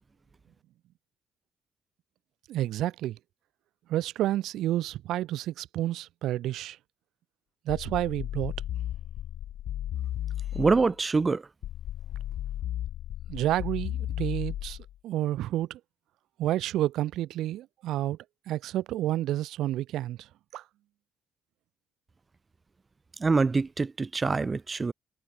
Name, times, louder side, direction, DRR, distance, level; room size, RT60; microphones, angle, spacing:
voice 1, 2.5-3.2 3.9-6.8 7.7-8.5 13.3-14.8 15.0-15.8 16.4-18.2 18.5-20.3 20.5-20.6, right 14 dB, 85° right, 0.5 m, -30 dB
sound 1, 7.7-10.9 11.6-14.9, left 12 dB, 75° left, 0.3 m, -34 dB
voice 2, 10.5-11.4 23.2-24.9, right 4 dB, 30° right, 0.3 m, -25 dB
cardioid pair, 90°, 0 cm